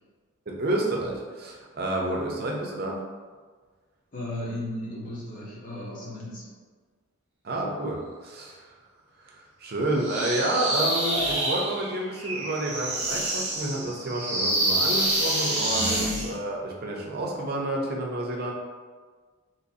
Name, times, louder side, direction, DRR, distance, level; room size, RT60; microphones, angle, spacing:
voice 1, 0.5-3.0 7.4-8.8 9.2-18.5, right 1 dB, 45° right, -1 dB, 0.6 m, -29 dB
voice 2, 4.1-6.5 15.7-15.9, left 1 dB, 40° left, -5 dB, 0.9 m, -35 dB
sound 1, 10.0-16.3, right 1 dB, 30° right, 1.0 m, -27 dB
2.9 x 2.6 x 4.0 m, 1.5 s
head